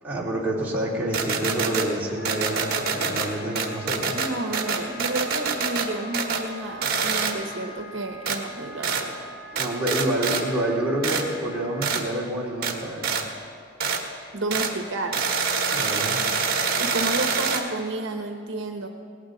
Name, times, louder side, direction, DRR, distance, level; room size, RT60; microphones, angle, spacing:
voice 1, 0.0-4.1 9.5-13.2 15.7-16.2, right 1 dB, 10° right, -6 dB, 2.8 m, -28 dB
sound 1, 1.1-1.9 2.2-3.3 3.5-5.9 6.1-6.5 6.8-7.3 8.2-8.4 8.8-9.0 9.5-10.4 11.0-11.2 11.8-12.0 12.6-12.7 13.0-13.2 13.8-14.0 14.5-14.7 15.1-17.6, right 5 dB, 45° right, 1.5 m, -25 dB
Wind instrument woodwind instrument, 2.0-11.9, left 1 dB, 80° left, 3.9 m, -43 dB
voice 2, 4.1-9.3 14.3-15.2 16.8-18.9, right 2 dB, 65° right, 4 dB, 1.0 m, -31 dB
18.5 x 18.0 x 3.9 m, 2.2 s
head